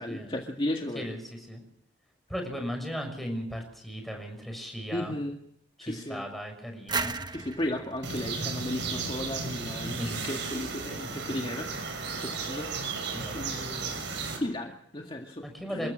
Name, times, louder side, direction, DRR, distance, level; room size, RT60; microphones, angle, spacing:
voice 1, 0.0-1.1 4.9-5.4 5.8-6.2 7.3-12.9 13.3-14.0 14.4-15.9, left 1 dB, 25° left, 1 dB, 2.0 m, -35 dB
voice 2, 0.9-1.6 2.3-5.1 5.8-7.2 10.0-10.3 13.1-13.4 15.4-15.9, equal, ahead, 3 dB, 6.3 m, -37 dB
sound 1, 6.9-9.6, right 4 dB, 20° right, 1.0 m, -36 dB
sound 2, 8.0-14.4, right 4 dB, 65° right, 6.2 m, -34 dB
29.0 x 15.0 x 7.6 m, 0.70 s
head